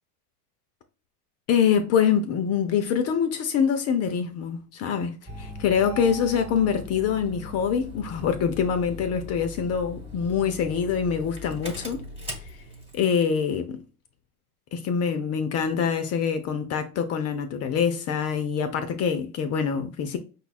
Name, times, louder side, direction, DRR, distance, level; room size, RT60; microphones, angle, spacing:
voice 1, 1.5-12.0 12.9-13.8 14.7-20.2, left 7 dB, 35° left, 0.5 m, -25 dB
Engine starting, 5.3-13.1, left 2 dB, 15° right, 1.2 m, -40 dB
5.4 x 2.3 x 4.1 m
supercardioid pair, 135°, 45 cm